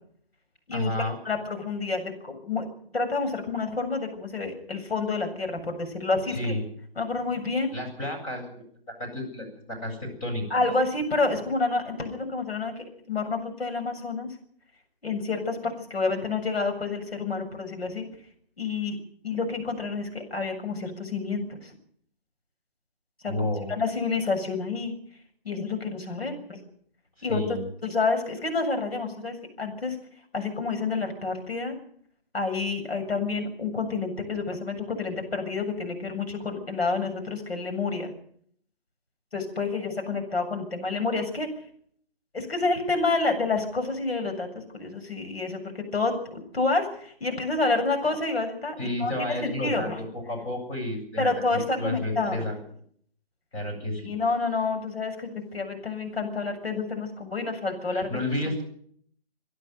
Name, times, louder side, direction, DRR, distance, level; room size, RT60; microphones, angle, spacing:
voice 1, 0.7-1.2 6.3-6.7 7.7-8.5 9.0-10.7 23.3-23.7 27.2-27.7 48.8-51.3 51.5-52.6 53.5-54.1 57.9-58.6, left 1 dB, 20° left, -1 dB, 7.5 m, -31 dB
voice 2, 1.3-2.7 2.9-6.5 7.0-7.7 10.5-14.3 15.0-18.1 18.6-19.0 19.2-21.7 23.2-25.0 25.4-26.6 27.2-27.4 27.8-30.0 30.3-31.8 32.3-38.1 39.3-41.5 42.3-50.0 51.2-52.4 54.1-58.1, left 3 dB, 75° left, 5 dB, 7.4 m, -29 dB
25.0 x 11.5 x 9.4 m, 0.64 s
figure-of-eight pair, 155°, 31 cm